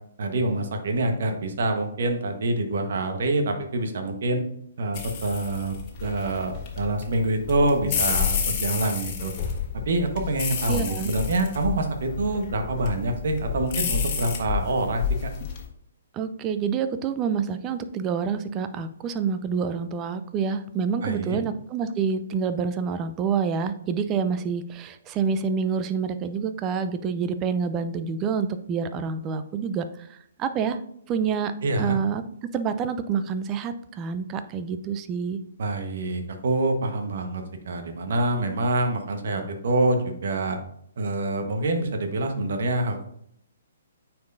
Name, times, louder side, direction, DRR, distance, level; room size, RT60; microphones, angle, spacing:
voice 1, 0.2-4.4 4.8-5.7 6.0-9.3 9.8-15.3 21.0-21.4 31.6-32.0 35.6-40.6 41.0-43.0, right 2 dB, 60° right, 5 dB, 1.2 m, -26 dB
sound 1, 4.9-15.6, left 7 dB, 35° left, 1.4 m, -30 dB
voice 2, 10.7-11.1 16.1-29.8 30.4-30.8 31.1-31.5 31.8-32.2 32.5-35.4, right 6 dB, 25° right, 10 dB, 0.5 m, -27 dB
9.1 x 4.6 x 2.6 m, 0.70 s
figure-of-eight pair, 130°, 0 cm